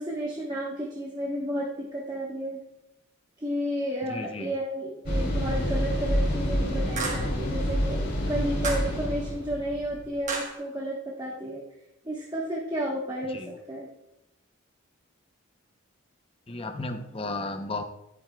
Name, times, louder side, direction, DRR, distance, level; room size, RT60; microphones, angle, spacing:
voice 1, 0.0-2.6 3.4-11.6 12.0-13.4 13.7-13.9, equal, 20° right, -4 dB, 1.1 m, -32 dB
voice 2, 4.1-4.5 13.3-13.5 16.5-17.8, left 2 dB, 25° left, 7 dB, 0.7 m, -34 dB
sound 1, 5.1-10.1, equal, 50° left, 2.7 m, -28 dB
sound 2, 5.6-5.7 7.0-7.4 8.6-9.0 10.3-10.6, right 3 dB, 35° right, 1.3 m, -33 dB
11.0 x 9.3 x 2.3 m, 0.88 s
head